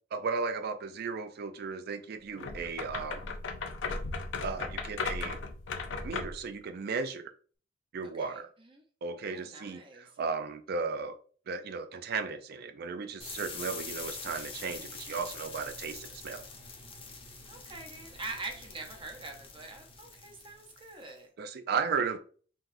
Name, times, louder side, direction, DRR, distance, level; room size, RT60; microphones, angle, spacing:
voice 1, 0.1-3.3 4.4-5.4 6.0-7.2 7.9-8.5 9.0-11.2 11.5-16.4 21.4-22.2, right 5 dB, 55° right, 9 dB, 0.3 m, -35 dB
sound 1, 2.4-6.5, left 4 dB, 75° left, 0.5 m, -36 dB
voice 2, 8.2-8.8 9.2-10.2 17.5-21.3, right 3 dB, 25° right, 2 dB, 0.8 m, -44 dB
sound 2, 13.2-21.1, left 4 dB, 30° left, 0.8 m, -45 dB
4.0 x 3.6 x 2.6 m, 0.43 s
head